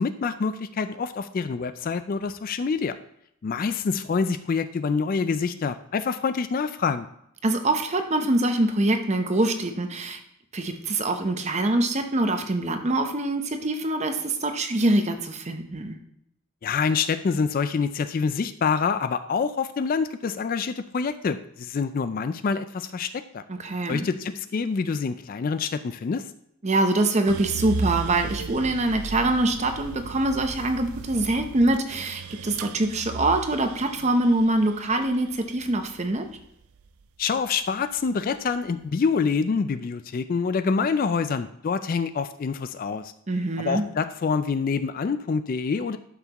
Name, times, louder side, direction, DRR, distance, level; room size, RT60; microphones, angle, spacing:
voice 1, 0.0-3.0 3.4-7.1 16.6-23.4 23.9-26.3 37.2-43.1 43.6-46.0, left 5 dB, 40° left, 11 dB, 0.3 m, -26 dB
voice 2, 7.4-10.2 10.5-16.0 23.5-24.0 26.6-36.3 43.3-43.8, right 2 dB, 30° right, 6 dB, 0.8 m, -24 dB
sound 1, 27.3-37.5 37.9-38.7, right 4 dB, 80° right, 0.4 m, -36 dB
12.0 x 5.8 x 3.0 m, 0.75 s
head